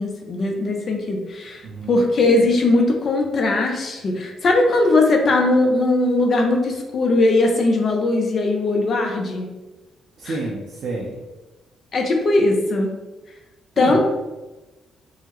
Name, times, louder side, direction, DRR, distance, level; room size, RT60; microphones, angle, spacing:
voice 1, 0.0-9.5 10.2-10.4 11.9-12.9 13.8-14.0, left 2 dB, 50° left, 2 dB, 0.6 m, -19 dB
voice 2, 1.6-2.0 10.2-11.2 13.8-14.0, right 2 dB, 60° right, -4 dB, 0.6 m, -29 dB
3.6 x 2.1 x 3.0 m, 1.1 s
cardioid pair, 90°, 0 cm